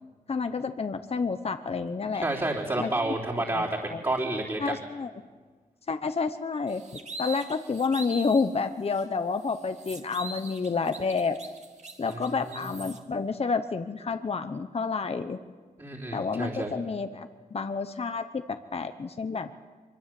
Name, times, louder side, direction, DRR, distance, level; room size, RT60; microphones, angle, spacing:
voice 1, 0.3-2.2 2.8-4.0 4.6-5.1 5.9-6.8 7.2-11.4 12.0-15.4 16.1-19.5, left 4 dB, 40° left, 9 dB, 0.9 m, -29 dB
voice 2, 2.1-4.7 12.1-12.7 15.8-16.8, right 2 dB, 25° right, -6 dB, 3.6 m, -30 dB
sound 1, 6.7-8.5 8.9-9.0 9.4-13.0, right 2 dB, 50° right, 2.5 m, -42 dB
24.5 x 23.5 x 7.7 m, 1.5 s
wide cardioid pair, 115°, 15 cm